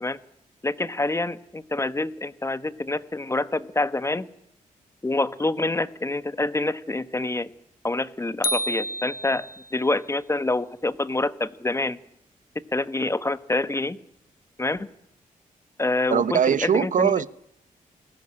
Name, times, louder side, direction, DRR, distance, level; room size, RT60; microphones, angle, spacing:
voice 1, 0.6-4.3 5.0-7.5 7.8-9.5 9.7-12.0 12.7-14.0 14.6-14.9 15.8-17.1, left 2 dB, 20° left, 1.2 m, -26 dB
sound 1, 8.4-9.8, left 1 dB, 90° left, 1.5 m, -29 dB
voice 2, 16.1-17.3, right 8 dB, 65° right, 0.9 m, -21 dB
21.5 x 17.0 x 9.9 m
cardioid pair, 85°, 14 cm